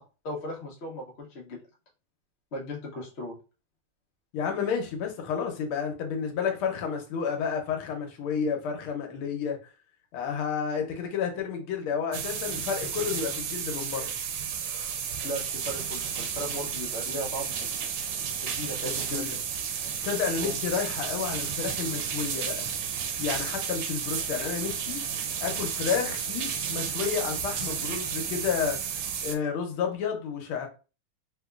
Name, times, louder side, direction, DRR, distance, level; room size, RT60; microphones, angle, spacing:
voice 1, 0.2-1.6 2.5-3.4 15.2-17.7 18.4-19.4 20.4-20.6, equal, 55° left, 0.7 m, -37 dB
voice 2, 4.3-9.6 10.1-14.2 18.8-19.4 20.0-22.7 23.2-25.0 25.4-28.8 29.2-30.7, left 6 dB, 80° left, 1.6 m, -31 dB
sound 1, 12.1-29.4, right 7 dB, 85° right, 1.5 m, -32 dB
3.5 x 2.9 x 2.3 m
omnidirectional pair, 2.3 m